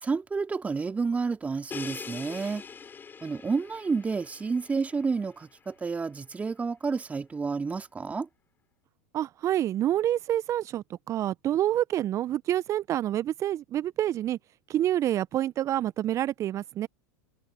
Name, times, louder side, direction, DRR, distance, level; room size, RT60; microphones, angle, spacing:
voice 1, 0.0-2.6 3.2-8.3, right 4 dB, 15° right, 2.7 m, -30 dB
Crash cymbal, 1.7-5.5, left 6 dB, 20° left, 6.5 m, -43 dB
voice 2, 9.1-14.4 14.7-16.9, right 12 dB, 35° right, 1.1 m, -27 dB
hypercardioid pair, 90°, 9 cm